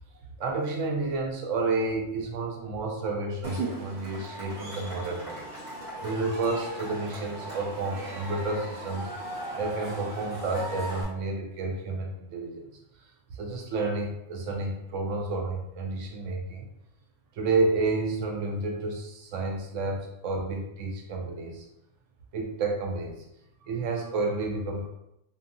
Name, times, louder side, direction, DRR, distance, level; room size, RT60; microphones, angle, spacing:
voice 1, 0.4-5.4 6.0-9.1 9.6-12.7 13.3-16.6 17.4-21.7 22.3-23.2 23.6-24.9, right 3 dB, 75° right, 1 dB, 0.9 m, -30 dB
Cheering / Crowd, 3.4-11.0, right 2 dB, 55° right, 1.4 m, -38 dB
2.7 x 2.4 x 2.5 m, 0.83 s
omnidirectional pair, 1.3 m